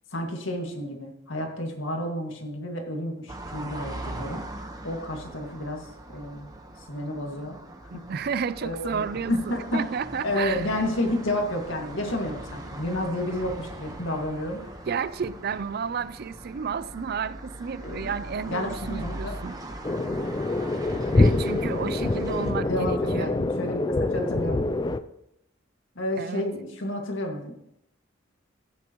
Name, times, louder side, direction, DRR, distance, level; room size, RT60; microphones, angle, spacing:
voice 1, 0.1-4.4 4.8-6.5 6.8-7.6 7.9-8.1 8.6-9.8 10.2-14.9 17.8-18.1 18.5-19.3 21.6-21.7 22.6-24.7 26.0-27.6, left 1 dB, 75° left, 2.0 m, -31 dB
sound 1, 3.3-22.5, right 1 dB, 20° right, 1.1 m, -40 dB
voice 2, 7.9-9.4 9.7-10.7 14.9-19.6 21.1-23.3 26.1-26.4, right 6 dB, 50° right, 0.4 m, -31 dB
sound 2, 19.8-25.0, left 2 dB, 20° left, 0.3 m, -25 dB
14.5 x 9.6 x 3.0 m
head